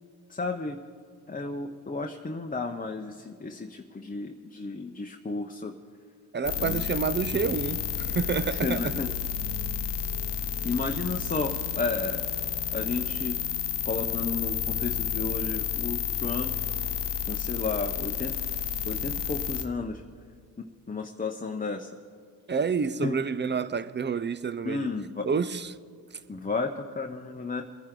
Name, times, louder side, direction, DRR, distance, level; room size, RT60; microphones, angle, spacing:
voice 1, 0.3-0.8 1.3-5.8 6.6-6.9 8.5-9.1 10.6-12.3 12.7-13.4 13.8-16.6 17.3-18.4 18.8-20.0 20.6-21.9 23.0-23.2 24.6-25.3 26.3-27.6, left 3 dB, 20° left, 0.8 m, -33 dB
voice 2, 6.3-8.9 22.5-24.9 25.2-25.8, right 5 dB, 25° right, 0.5 m, -28 dB
sound 1, 6.4-19.6, left 8 dB, 70° left, 0.8 m, -31 dB
22.5 x 10.5 x 3.8 m
supercardioid pair, 50°, 43 cm